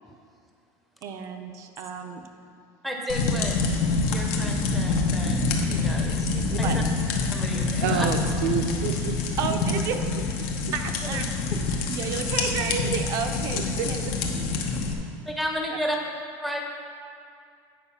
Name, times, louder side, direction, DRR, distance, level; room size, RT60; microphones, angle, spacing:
voice 1, 1.0-2.2 6.5-6.8 9.4-10.0 10.7-11.5 11.9-14.0 14.3-14.7, right 7 dB, 40° right, 6 dB, 0.5 m, -32 dB
voice 2, 2.8-3.6 4.1-6.8 7.3-8.1 11.0-11.2 11.5-11.6 15.3-16.0 16.4-16.6, equal, ahead, 0 dB, 0.7 m, -33 dB
sound 1, 3.1-14.9, left 3 dB, 70° left, 1.0 m, -26 dB
voice 3, 7.8-9.8 10.4-10.5 12.8-12.9 13.5-14.1, right 8 dB, 85° right, 5 dB, 0.6 m, -30 dB
9.0 x 5.0 x 5.7 m, 2.3 s
cardioid pair, 175°, 8 cm